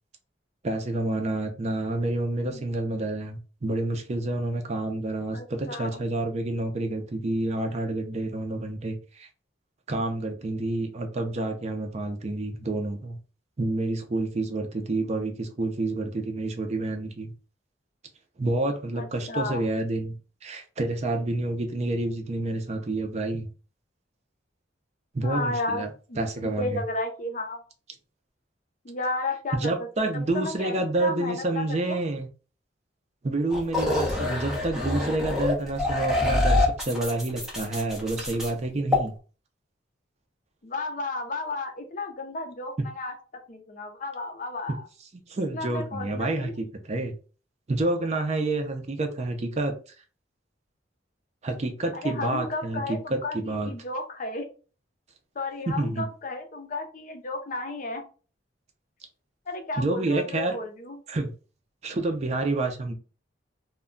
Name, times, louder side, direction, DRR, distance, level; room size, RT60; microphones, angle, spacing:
voice 1, 0.6-9.3 9.9-13.2 13.6-17.3 18.4-20.2 20.4-23.5 25.1-25.9 26.2-26.8 29.5-32.3 33.2-39.1 45.3-47.1 47.7-49.7 51.4-52.8 53.1-53.7 55.7-56.1 59.8-60.6 61.1-61.3 61.8-62.9, right 2 dB, 35° right, 0.5 m, -28 dB
voice 2, 5.3-6.0 18.9-19.6 25.2-27.6 28.8-29.7 30.1-32.0 40.6-43.1 43.5-44.8 45.4-46.5 52.0-54.5 55.4-58.0 59.5-61.0, left 2 dB, 45° left, 0.5 m, -33 dB
sound 1, 33.5-38.5 38.9-39.0, left 2 dB, 5° right, 0.8 m, -25 dB
2.2 x 2.2 x 3.6 m
head